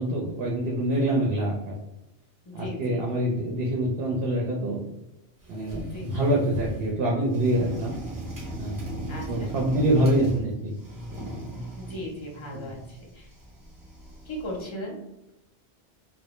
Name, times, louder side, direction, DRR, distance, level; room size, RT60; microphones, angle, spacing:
voice 1, 0.0-1.7 2.5-4.8 5.5-7.9 8.6-8.8 9.3-10.7 12.5-12.7, right 1 dB, 65° right, -2 dB, 0.7 m, -25 dB
voice 2, 2.5-3.1 5.9-6.3 9.1-9.5 11.8-13.3 14.2-15.0, left 1 dB, 40° left, -2 dB, 0.4 m, -37 dB
sound 1, 5.4-6.9 7.3-10.5 10.8-14.6, right 1 dB, 30° right, 0.4 m, -38 dB
2.1 x 2.0 x 2.9 m, 0.92 s
omnidirectional pair, 1.2 m